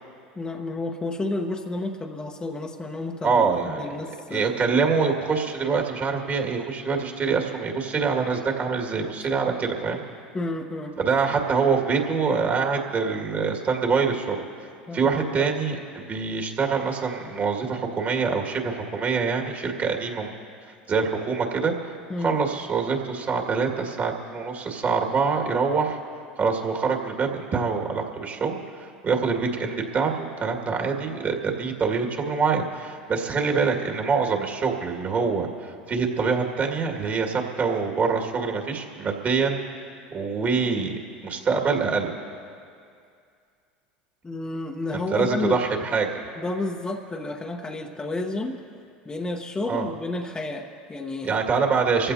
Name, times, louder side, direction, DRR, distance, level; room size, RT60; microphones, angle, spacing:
voice 1, 0.4-4.5 10.3-11.0 14.9-15.5 22.1-22.3 44.2-45.6 46.4-48.6 49.0-51.4, left 2 dB, 15° left, 2 dB, 1.1 m, -31 dB
voice 2, 3.2-3.9 4.3-10.0 11.0-14.4 14.9-20.3 20.9-21.7 22.2-26.0 26.4-39.6 40.1-42.1 44.9-46.2 49.7-49.9 51.2-52.1, right 5 dB, 35° right, 1 dB, 2.1 m, -25 dB
25.0 x 15.5 x 2.8 m, 2.3 s
hypercardioid pair, 85°, 5 cm